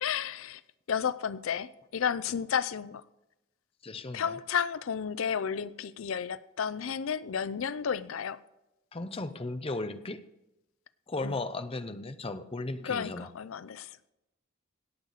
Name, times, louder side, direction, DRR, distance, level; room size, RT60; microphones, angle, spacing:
voice 1, 0.0-0.6 0.9-3.0 4.1-8.4 11.2-11.3 12.8-13.9, left 7 dB, 75° left, 17 dB, 0.5 m, -32 dB
voice 2, 3.8-4.4 8.9-10.2 11.1-13.3, left 2 dB, 30° left, 10 dB, 0.7 m, -36 dB
17.5 x 7.9 x 4.1 m, 0.93 s
head